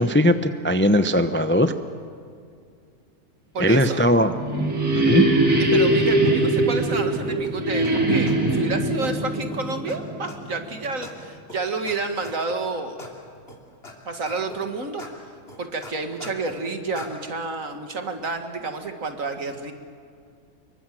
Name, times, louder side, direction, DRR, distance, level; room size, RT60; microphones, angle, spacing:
voice 1, 0.0-1.7 3.6-4.3 4.9-5.2, equal, 10° left, 9 dB, 0.6 m, -19 dB
voice 2, 3.5-4.0 5.6-13.0 14.1-15.0 15.6-19.7, right 3 dB, 60° right, 6 dB, 2.3 m, -29 dB
sound 1, 4.2-10.7, right 1 dB, 80° right, 3.6 m, -22 dB
sound 2, 7.4-7.5 7.8-7.9 8.3-8.6 9.0-9.1 9.5-9.6 9.9-10.0 10.3-10.6 11.0-11.1 11.5-11.6 11.9-12.0 12.2-12.6 13.0-13.1 13.5-13.9 14.2-14.6 15.0-15.1 15.5-16.6 16.9-17.1, left 2 dB, 40° left, 3.3 m, -40 dB
26.0 x 23.0 x 7.7 m, 2.3 s
omnidirectional pair, 1.6 m